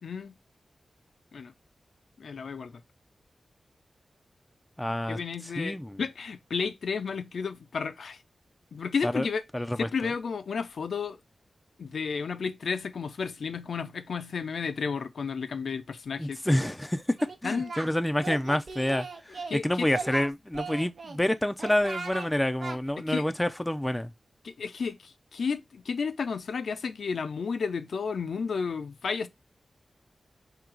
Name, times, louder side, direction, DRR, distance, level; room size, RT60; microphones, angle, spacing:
voice 1, 0.0-0.4 1.3-1.5 2.2-2.8 5.1-8.2 8.7-9.4 9.8-11.2 11.8-16.6 17.4-17.7 19.5-19.9 23.0-23.2 24.4-29.3, left 5 dB, 85° left, 0.5 m, -32 dB
voice 2, 4.8-5.2 5.6-6.0 9.0-9.3 9.5-9.9 16.2-17.2 17.4-24.1, left 1 dB, 10° left, 0.5 m, -28 dB
Singing, 17.2-17.9 18.2-19.6 19.9-21.2 21.6-22.3 22.6-22.8, right 4 dB, 70° right, 0.9 m, -38 dB
3.8 x 2.8 x 4.5 m
wide cardioid pair, 75°, 0 cm